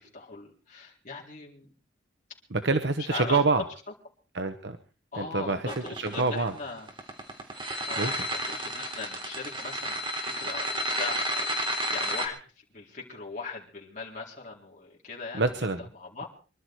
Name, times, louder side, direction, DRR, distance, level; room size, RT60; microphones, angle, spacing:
voice 1, 0.0-1.7 3.1-3.4 5.1-6.9 7.9-12.4 12.7-15.5 15.9-16.3, left 4 dB, 45° left, -3 dB, 4.1 m, -39 dB
voice 2, 2.5-3.6 4.3-4.8 5.1-6.5 8.0-8.2 15.3-15.8, right 3 dB, 65° right, 8 dB, 1.1 m, -27 dB
sound 1, 5.7-12.3, equal, 25° right, 3.3 m, -31 dB
24.5 x 12.0 x 4.7 m, 0.38 s
head